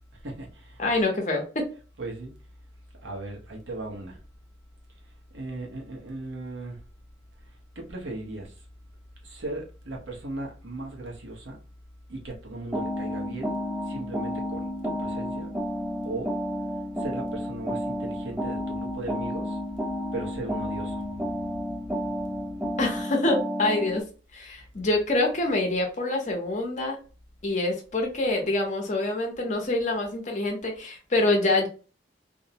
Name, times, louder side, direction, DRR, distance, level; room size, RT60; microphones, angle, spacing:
voice 1, 0.2-0.8 2.0-2.3 3.0-4.2 5.3-6.8 7.8-8.5 9.2-11.6 12.1-13.6 13.9-15.5 16.0-16.3 17.0-19.6 20.1-21.1, right 2 dB, 80° right, 0.9 m, -37 dB
voice 2, 0.8-1.4 22.8-24.0 24.3-27.0 27.4-31.7, left 2 dB, 40° left, 0.7 m, -26 dB
sound 1, 12.7-24.0, equal, 5° right, 0.4 m, -31 dB
2.6 x 2.0 x 2.7 m
head